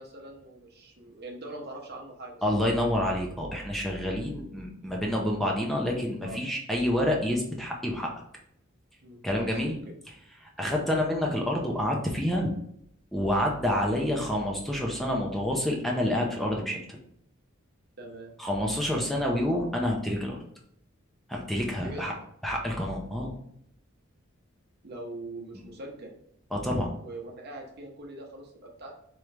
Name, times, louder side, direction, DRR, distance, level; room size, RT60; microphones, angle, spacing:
voice 1, 0.0-2.5 4.2-4.3 6.2-6.4 9.0-9.6 10.6-10.8 18.0-18.3 21.8-22.1 24.8-26.1 27.0-28.9, right 2 dB, 55° right, 1 dB, 0.8 m, -42 dB
voice 2, 2.4-8.1 9.2-9.8 10.4-12.5 13.1-17.0 18.4-20.4 21.3-22.1 22.4-23.3 25.5-25.6 26.5-26.9, left 1 dB, ahead, -1 dB, 0.6 m, -28 dB
3.7 x 3.1 x 3.3 m, 0.70 s
head